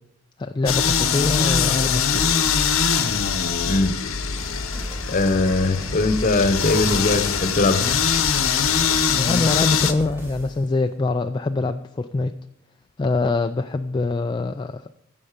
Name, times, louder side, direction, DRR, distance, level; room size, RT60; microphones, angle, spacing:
voice 1, 0.4-2.3 9.2-12.3 13.0-14.9, left 3 dB, 20° left, 7 dB, 0.3 m, -24 dB
sound 1, 0.7-9.9, left 6 dB, 80° left, 0.9 m, -22 dB
voice 2, 3.6-3.9 5.1-7.8, left 2 dB, 40° left, 10 dB, 1.0 m, -20 dB
sound 2, 4.4-10.7, equal, 10° right, 2.0 m, -38 dB
15.0 x 5.4 x 5.0 m, 0.78 s
head